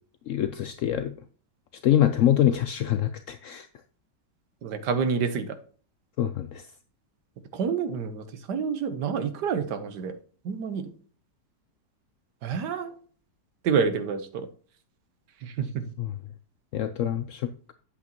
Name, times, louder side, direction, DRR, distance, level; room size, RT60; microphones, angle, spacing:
voice 1, 0.3-1.1 1.8-3.7 6.2-6.6 16.0-16.1 16.7-17.5, left 11 dB, 75° left, 10 dB, 0.7 m, -25 dB
voice 2, 4.6-5.6 7.5-10.1 10.4-10.9 12.4-12.9 13.6-14.5 15.4-15.8, right 6 dB, 70° right, 10 dB, 1.5 m, -28 dB
8.2 x 8.1 x 3.0 m, 0.43 s
omnidirectional pair, 1.9 m